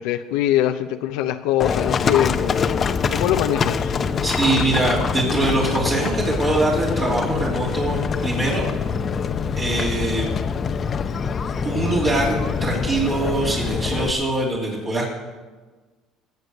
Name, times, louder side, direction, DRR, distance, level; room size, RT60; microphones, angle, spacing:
voice 1, 0.0-2.7 3.1-4.0, left 12 dB, 85° left, 6 dB, 0.7 m, -23 dB
Livestock farm animals working animals, 1.6-14.1, left 6 dB, 35° left, 0.8 m, -24 dB
voice 2, 4.2-8.6 9.6-10.3 11.6-15.1, right 2 dB, 35° right, -5 dB, 3.3 m, -23 dB
18.0 x 8.1 x 6.6 m, 1.3 s
cardioid pair, 110°, 0 cm